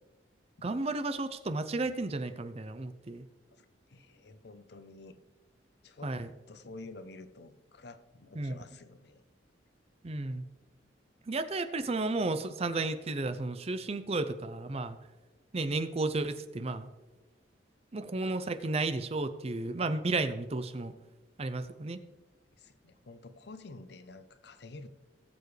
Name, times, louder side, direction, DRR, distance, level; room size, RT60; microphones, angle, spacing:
voice 1, 0.6-3.3 6.0-6.3 8.3-8.6 10.0-10.4 11.3-15.0 15.5-16.9 17.9-20.9 21.4-22.0, right 2 dB, 35° right, 11 dB, 0.6 m, -33 dB
voice 2, 3.5-5.2 5.8-6.2 6.5-9.2 22.6-24.9, left 2 dB, 60° left, 11 dB, 0.7 m, -50 dB
19.0 x 7.1 x 3.3 m, 1.2 s
head